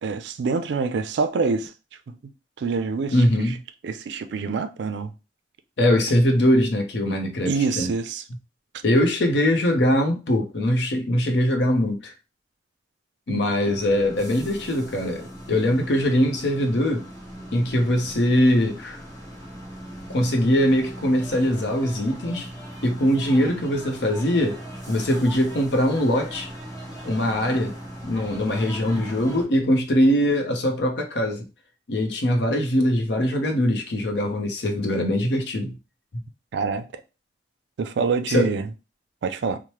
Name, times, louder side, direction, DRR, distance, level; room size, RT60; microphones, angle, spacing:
voice 1, 0.0-1.7 2.6-3.5 3.8-5.1 7.4-8.2 13.3-13.4 36.5-36.8 37.8-38.7 39.2-39.6, right 4 dB, 70° right, 0.4 m, -26 dB
voice 2, 3.1-3.5 5.8-7.9 8.8-12.1 13.3-17.0 17.5-19.0 20.1-22.5 22.8-24.6 24.9-26.5 27.0-27.8 28.0-31.4 31.9-35.7 38.3-38.5, equal, 70° left, 0.7 m, -22 dB
sound 1, 13.6-29.4, equal, 15° left, 1.0 m, -39 dB
3.0 x 2.1 x 2.9 m
head